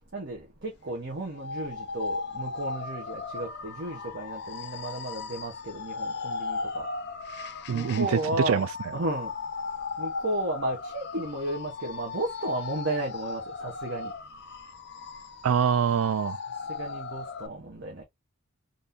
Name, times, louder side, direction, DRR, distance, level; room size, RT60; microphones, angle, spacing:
voice 1, 0.1-6.9 7.7-8.7 8.9-9.3 10.0-14.1 16.8-18.0, right 1 dB, 50° right, 0.9 m, -33 dB
sound 1, 1.4-17.5, left 4 dB, 50° left, 0.4 m, -37 dB
voice 2, 7.7-8.7 15.4-16.4, right 7 dB, 65° right, 0.3 m, -25 dB
3.5 x 2.6 x 2.6 m
head